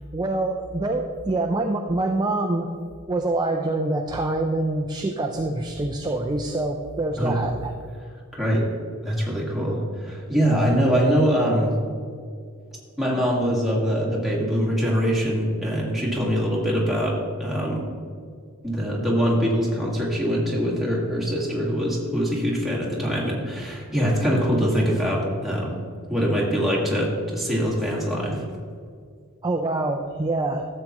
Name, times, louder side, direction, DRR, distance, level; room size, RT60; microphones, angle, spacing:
voice 1, 0.0-2.7 3.1-7.7 29.4-30.6, right 2 dB, 20° right, 2 dB, 0.4 m, -25 dB
voice 2, 8.3-8.7 9.0-11.8 13.0-17.9 18.6-25.8 26.1-28.4, equal, ahead, -5 dB, 1.8 m, -23 dB
12.5 x 7.5 x 3.0 m, 2.2 s
head